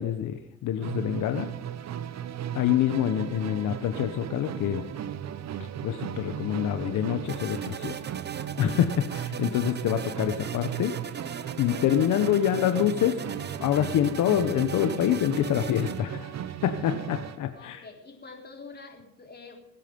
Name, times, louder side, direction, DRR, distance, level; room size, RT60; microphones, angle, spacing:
voice 1, 0.0-1.5 2.5-4.8 5.8-7.9 8.6-10.9 11.6-13.2 13.6-17.8, left 10 dB, 80° left, 8 dB, 1.1 m, -26 dB
Musical instrument, 0.8-17.5, right 9 dB, 60° right, 0.9 m, -36 dB
sound 1, 7.3-16.0, right 7 dB, 35° right, 0.9 m, -40 dB
voice 2, 17.5-19.6, left 4 dB, 35° left, 2 dB, 3.7 m, -47 dB
22.0 x 9.0 x 5.3 m, 0.85 s
cardioid pair, 90°, 30 cm